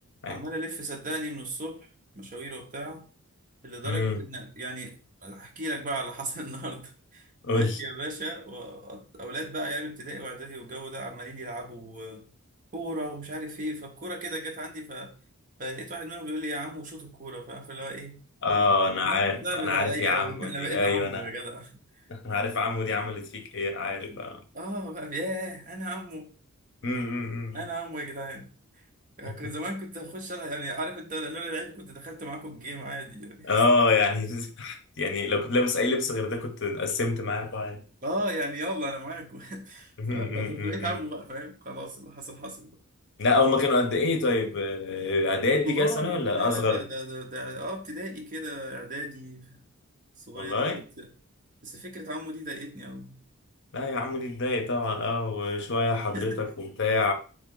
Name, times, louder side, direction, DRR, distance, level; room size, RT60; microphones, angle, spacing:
voice 1, 0.3-1.8 2.1-3.1 3.6-4.9 5.2-12.2 12.7-15.1 15.6-18.2 18.5-22.0 24.5-26.3 27.5-28.5 29.2-33.5 38.0-42.8 45.6-49.6 50.2-51.1 51.6-53.2 56.1-56.4, right 1 dB, 35° right, 0.9 m, -36 dB
voice 2, 3.8-4.2 7.4-7.8 18.4-21.2 22.1-24.4 26.8-27.6 33.4-37.8 40.0-41.0 43.2-46.8 50.3-50.8 53.7-57.1, left 3 dB, 55° left, 0.7 m, -26 dB
4.2 x 3.2 x 3.8 m
head